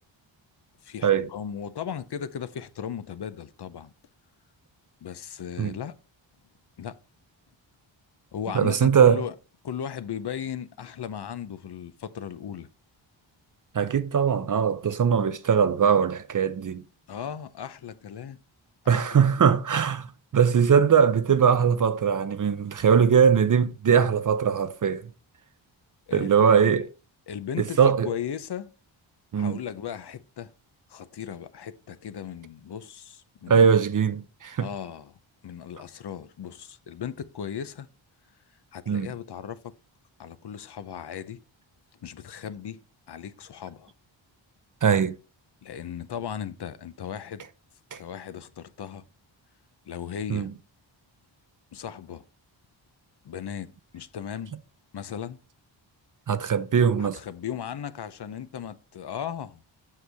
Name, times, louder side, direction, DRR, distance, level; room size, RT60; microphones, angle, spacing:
voice 1, 0.8-3.9 5.0-6.0 6.8-7.0 8.3-9.3 9.6-12.7 17.1-18.4 18.8-19.0 19.4-19.5 26.1-26.9 27.3-28.7 29.3-30.5 30.9-33.7 34.6-35.1 35.4-37.9 38.7-39.7 40.2-41.4 42.0-42.8 43.1-43.9 45.6-47.5 48.0-49.0 49.9-50.5 51.7-52.2 53.2-54.5 54.9-55.4 57.0-59.6, left 8 dB, 55° left, 0.7 m, -36 dB
voice 2, 8.5-9.2 13.7-16.8 18.9-20.1 20.3-25.0 26.1-26.9 27.6-28.1 29.3-29.6 33.5-34.7 38.9-39.1 44.8-45.1 47.9-48.0 50.3-50.5 56.3-57.2, right 7 dB, 40° right, 0.6 m, -21 dB
7.7 x 6.3 x 3.4 m
wide cardioid pair, 100°, 47 cm